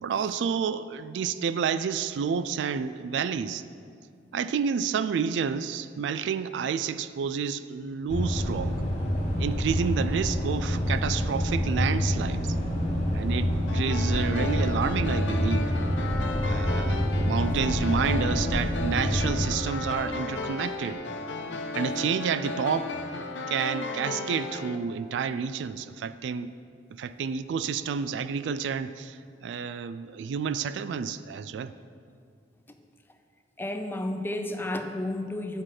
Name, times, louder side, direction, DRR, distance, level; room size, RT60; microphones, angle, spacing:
voice 1, 0.0-3.6 4.3-8.7 9.4-12.6 13.1-15.7 16.5-21.0 21.7-22.9 23.5-26.5 27.0-31.7, right 6 dB, 75° right, 13 dB, 0.3 m, -30 dB
sound 1, 8.1-19.5, equal, 40° left, 1.2 m, -27 dB
sound 2, 13.7-24.8, left 3 dB, 80° left, 0.6 m, -35 dB
voice 2, 33.6-35.6, left 1 dB, 10° left, 6 dB, 0.5 m, -31 dB
9.7 x 4.8 x 5.8 m, 2.2 s
head